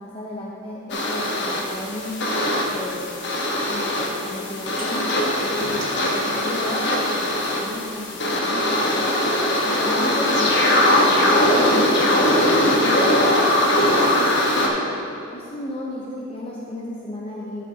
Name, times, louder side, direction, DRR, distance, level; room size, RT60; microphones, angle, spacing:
voice 1, 0.0-2.2 2.7-3.2 3.7-5.9 6.1-9.1 9.6-14.7 15.3-17.7, left 1 dB, 25° left, -4 dB, 0.7 m, -34 dB
sound 1, 0.9-14.7, left 1 dB, 55° left, 1.1 m, -21 dB
sound 2, 4.8-4.9 5.6-7.8, right 2 dB, 85° right, 1.2 m, -39 dB
11.0 x 8.4 x 2.8 m, 2.7 s
head